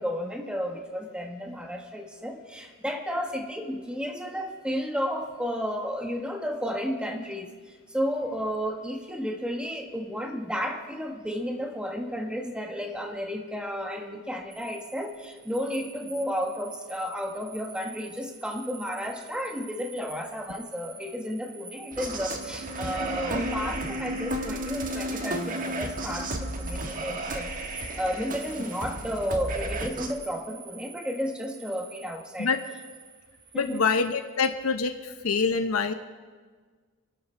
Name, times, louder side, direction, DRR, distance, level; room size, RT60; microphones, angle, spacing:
voice 1, 0.0-32.5 33.5-33.8, equal, 5° right, 2 dB, 1.4 m, -32 dB
sound 1, 14.5-34.4, right 4 dB, 25° right, 3.6 m, -48 dB
sound 2, 21.9-30.1, right 1 dB, 40° right, 1.3 m, -33 dB
voice 2, 33.5-35.9, left 5 dB, 90° left, 7 dB, 0.8 m, -25 dB
28.0 x 11.5 x 3.4 m, 1.5 s
head